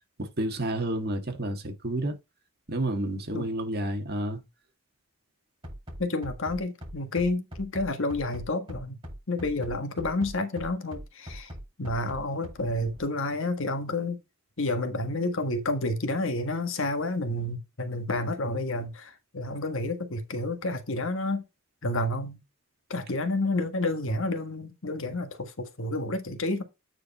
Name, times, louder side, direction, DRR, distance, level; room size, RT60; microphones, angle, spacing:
voice 1, 0.2-2.1 2.7-4.4, right 1 dB, 45° right, 1.9 m, -30 dB
Bass drum, 5.6-13.0, equal, 25° right, 6.0 m, -41 dB
voice 2, 6.0-9.0 9.3-11.5 11.8-14.2 14.6-21.4 21.8-22.4 22.9-26.6, left 2 dB, 60° left, 1.4 m, -30 dB
9.0 x 4.8 x 3.9 m
head